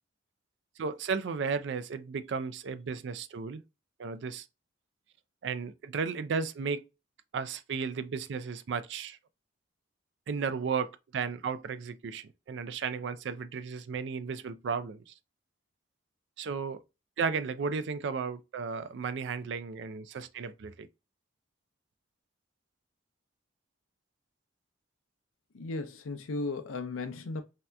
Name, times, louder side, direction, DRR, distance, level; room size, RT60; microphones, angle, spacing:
voice 1, 0.8-3.6 4.0-4.5 5.4-6.8 7.3-9.2 10.3-15.1 16.4-16.8 17.2-20.9, right 5 dB, 60° right, 0.3 m, -34 dB
voice 2, 25.5-27.4, left 3 dB, 90° left, 0.5 m, -35 dB
3.2 x 2.7 x 2.2 m
head